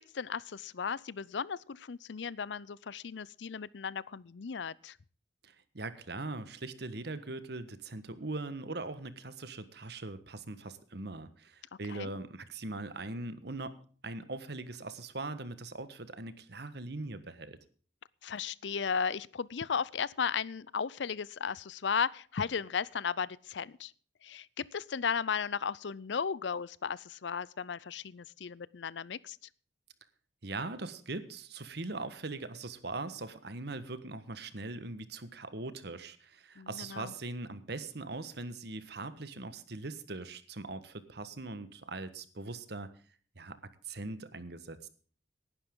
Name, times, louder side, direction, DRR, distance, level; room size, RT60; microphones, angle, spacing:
voice 1, 0.1-5.0 11.9-12.1 18.2-23.9 24.2-29.4 36.6-37.1, left 6 dB, 70° left, 0.5 m, -35 dB
voice 2, 5.4-13.8 14.0-17.6 30.4-42.9 43.4-43.6 43.8-44.9, right 2 dB, 60° right, 1.4 m, -41 dB
18.5 x 11.0 x 3.8 m
head